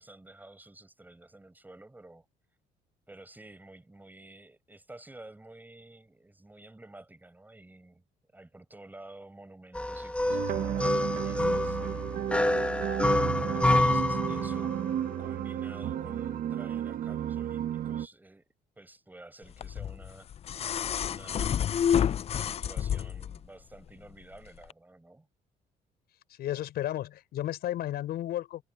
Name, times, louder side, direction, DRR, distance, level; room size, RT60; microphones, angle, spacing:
voice 1, 0.0-2.2 3.1-8.0 8.3-14.8 15.2-18.4 18.8-20.3 21.0-22.0 22.4-25.3, right 2 dB, 10° right, 8.0 m, -51 dB
sound 1, 9.7-14.9, left 1 dB, 5° left, 1.3 m, -28 dB
sound 2, 10.3-18.1, right 11 dB, 60° right, 1.0 m, -33 dB
sound 3, 19.6-23.4 24.6-24.7, left 9 dB, 35° left, 0.4 m, -29 dB
voice 2, 26.4-28.6, left 13 dB, 70° left, 5.6 m, -33 dB
cardioid pair, 110°, 17 cm